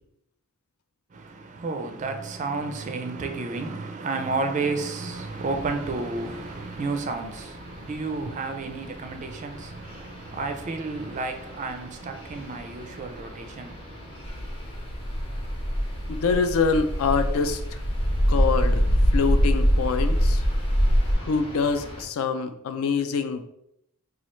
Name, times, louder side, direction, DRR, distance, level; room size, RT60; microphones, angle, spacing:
voice 1, 1.1-14.3, right 3 dB, 35° right, 0.4 m, -31 dB
sound 1, 5.1-22.0, left 1 dB, 25° left, 0.7 m, -44 dB
sound 2, 14.2-21.1, equal, 85° left, 1.1 m, -23 dB
voice 2, 16.1-17.6 18.3-18.8 19.1-20.4 21.2-23.4, left 5 dB, 70° left, 0.4 m, -25 dB
3.0 x 2.3 x 4.3 m
head